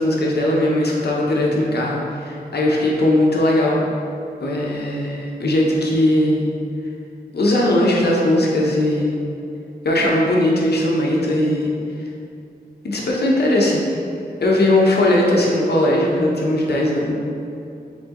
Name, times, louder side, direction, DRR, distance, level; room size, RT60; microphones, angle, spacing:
voice 1, 0.0-3.9 4.4-6.5 7.3-9.1 9.8-11.7 12.8-13.8 14.4-17.1, left 1 dB, 80° left, -3 dB, 0.7 m, -18 dB
4.5 x 3.6 x 2.9 m, 2.6 s
wide cardioid pair, 85°, 17 cm